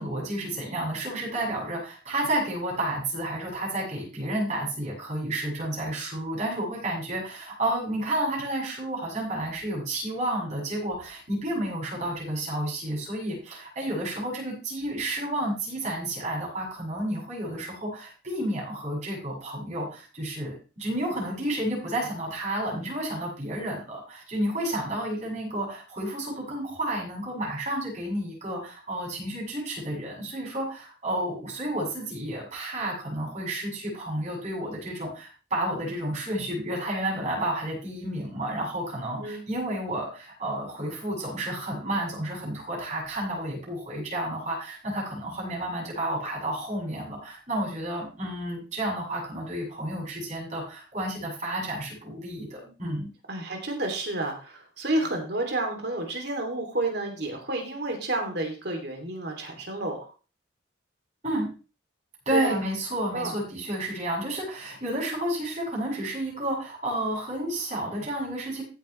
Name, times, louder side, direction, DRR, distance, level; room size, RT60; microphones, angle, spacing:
voice 1, 0.0-53.1 61.2-61.5 62.3-68.6, right 1 dB, 35° right, -3 dB, 7.2 m, -31 dB
voice 2, 53.3-60.0 62.3-62.6 63.1-63.4, right 2 dB, 55° right, 3 dB, 2.9 m, -30 dB
15.5 x 8.4 x 3.3 m, 0.34 s
head